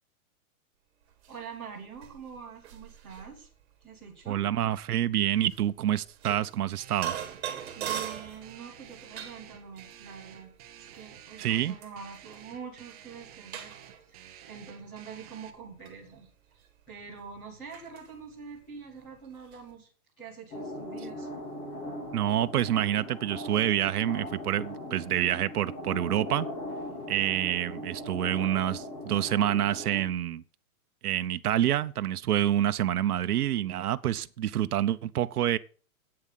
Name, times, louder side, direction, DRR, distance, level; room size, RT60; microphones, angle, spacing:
sound 1, 1.1-19.7, right 10 dB, 45° right, 2.5 m, -43 dB
voice 1, 1.3-3.5 3.8-4.4 7.7-10.5 10.8-13.7 14.1-19.9 20.2-21.3, right 6 dB, ahead, 0.5 m, -45 dB
voice 2, 4.3-7.2 11.4-11.8 22.1-26.5 27.1-30.4 31.0-35.6, right 11 dB, 85° right, 0.9 m, -27 dB
sound 2, 6.8-15.5, right 10 dB, 25° right, 1.0 m, -51 dB
sound 3, 20.5-30.0, left 1 dB, 20° left, 2.2 m, -39 dB
8.9 x 7.5 x 7.3 m
hypercardioid pair, 175°, 44 cm